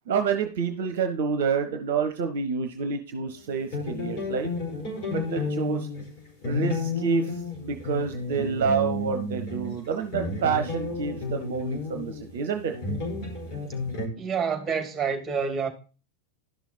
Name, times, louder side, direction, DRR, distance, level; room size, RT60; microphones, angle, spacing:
voice 1, 0.1-4.5 5.1-5.9 6.4-7.3 7.6-12.7, right 6 dB, 55° right, 1.0 m, -28 dB
sound 1, 3.7-14.1, left 3 dB, 40° left, 5.0 m, -32 dB
voice 2, 14.2-15.7, right 6 dB, 15° right, 2.7 m, -28 dB
12.0 x 6.2 x 4.2 m
figure-of-eight pair, 90°, 0 cm